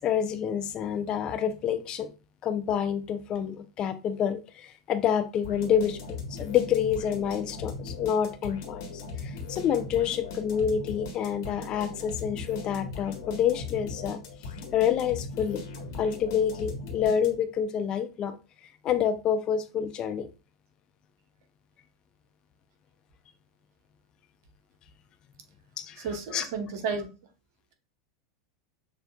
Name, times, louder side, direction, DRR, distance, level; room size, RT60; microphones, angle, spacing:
voice 1, 0.0-2.1 2.4-14.2 14.7-15.6 16.0-18.4 18.8-20.3 25.8-26.0 26.3-26.4, left 8 dB, 40° left, 0.5 m, -28 dB
sound 1, 5.4-17.6, left 4 dB, 65° left, 1.3 m, -39 dB
voice 2, 25.9-27.1, right 5 dB, 60° right, 1.0 m, -32 dB
6.5 x 2.5 x 2.3 m
hypercardioid pair, 85°, 2 cm